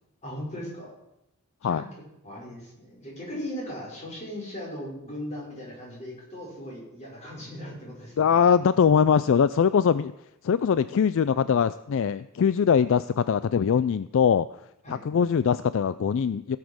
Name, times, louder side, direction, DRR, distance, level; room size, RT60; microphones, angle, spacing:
voice 1, 0.2-0.9 1.6-1.9 2.2-8.4 14.8-15.0, equal, 30° left, -4 dB, 5.7 m, -38 dB
voice 2, 8.2-10.1 10.4-14.5 14.9-16.6, left 7 dB, 60° left, 15 dB, 0.3 m, -22 dB
16.5 x 7.3 x 6.3 m, 0.85 s
head